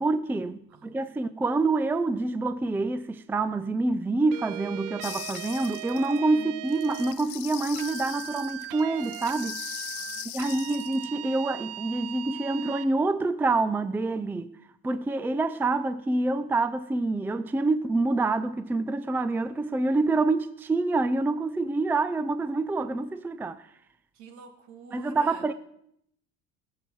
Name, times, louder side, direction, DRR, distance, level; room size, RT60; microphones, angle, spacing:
voice 1, 0.0-9.6 10.3-14.5 14.8-23.7 24.9-25.5, right 3 dB, 5° right, 0.4 m, -27 dB
voice 2, 0.7-1.7 6.4-6.6 10.0-11.4 24.1-25.4, right 4 dB, 70° right, 2.4 m, -50 dB
sound 1, 4.3-7.2 7.8-12.9, right 15 dB, 85° right, 0.9 m, -39 dB
sound 2, 5.0-6.2 6.7-11.1, left 15 dB, 75° left, 1.0 m, -40 dB
20.5 x 7.6 x 4.7 m
cardioid pair, 120°, 30 cm